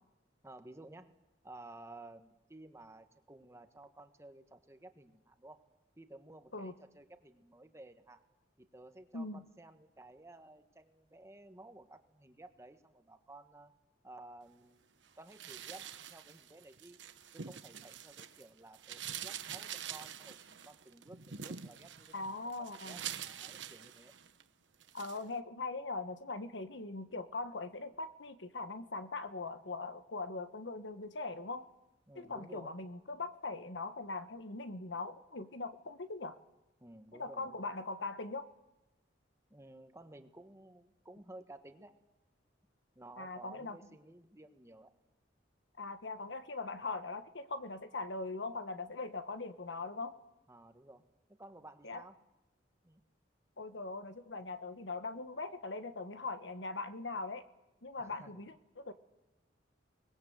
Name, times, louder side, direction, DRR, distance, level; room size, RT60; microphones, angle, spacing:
voice 1, 0.4-1.2 1.4-5.6 6.0-8.2 8.6-13.7 14.0-17.0 17.3-24.1 32.1-32.7 36.8-37.7 39.5-41.9 42.9-44.9 50.5-51.0 51.4-52.2 52.8-53.0 58.0-58.4, right 2 dB, 15° right, 7 dB, 1.4 m, -54 dB
voice 2, 9.1-9.4 22.1-23.0 24.9-31.7 32.1-36.4 37.1-38.5 43.2-43.8 45.8-50.1 51.8-52.0 53.6-57.4 57.8-58.9, left 3 dB, 80° left, 10 dB, 1.3 m, -41 dB
sound 1, 15.3-18.4 18.7-24.4 24.8-25.2, right 9 dB, 85° right, 1.1 m, -46 dB
23.0 x 20.0 x 8.0 m, 0.98 s
head